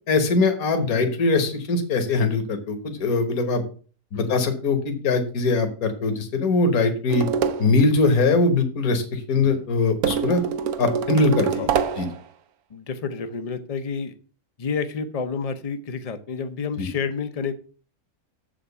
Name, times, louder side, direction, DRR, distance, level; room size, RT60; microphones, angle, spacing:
voice 1, 0.1-3.6 4.1-7.3 7.6-10.4 10.8-11.7 12.0-12.1 16.8-16.9, left 3 dB, 65° left, 7 dB, 1.7 m, -21 dB
sound 1, 7.1-7.8 10.0-12.2, right 7 dB, 70° right, 1.1 m, -25 dB
voice 2, 12.7-14.1 14.6-17.5, left 5 dB, 35° left, 10 dB, 0.6 m, -30 dB
7.3 x 5.0 x 6.7 m, 0.40 s
omnidirectional pair, 1.7 m